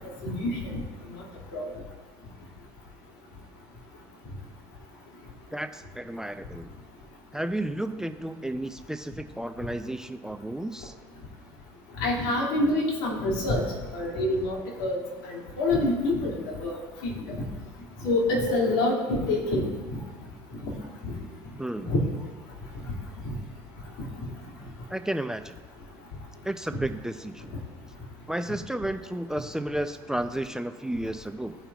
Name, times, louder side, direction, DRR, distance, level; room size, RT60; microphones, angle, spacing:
voice 1, 0.2-0.6 1.5-1.7 12.0-13.6 13.9-15.0 15.2-16.8 17.3-17.4 18.0-19.7 21.0-21.1 21.9-22.0, left 2 dB, 75° left, -2 dB, 2.3 m, -26 dB
voice 2, 5.5-6.7 7.3-10.9 21.6-21.9 24.9-25.6 26.4-27.4 28.3-31.6, right 1 dB, 5° right, 8 dB, 0.5 m, -32 dB
16.5 x 5.6 x 2.4 m, 1.3 s
hypercardioid pair, 75°, 11 cm